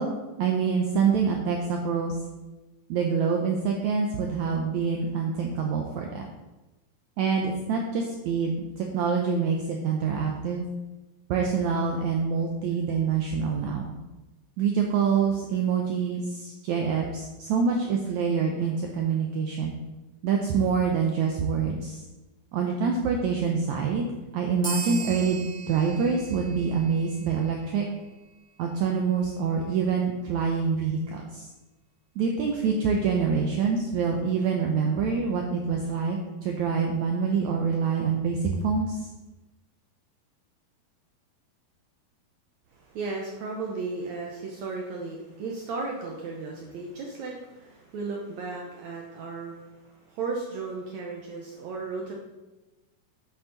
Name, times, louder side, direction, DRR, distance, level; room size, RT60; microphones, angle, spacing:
voice 1, 0.0-2.1 2.9-6.3 7.2-10.6 11.3-13.9 14.6-19.7 20.2-22.0 22.5-27.9 28.6-31.5 32.2-39.1, right 5 dB, 90° right, 1 dB, 1.6 m, -26 dB
sound 1, 24.6-27.7, right 3 dB, 50° right, 0.3 m, -38 dB
voice 2, 42.7-52.1, right 3 dB, 75° right, 0 dB, 1.7 m, -35 dB
8.3 x 8.0 x 4.0 m, 1.1 s
omnidirectional pair, 4.3 m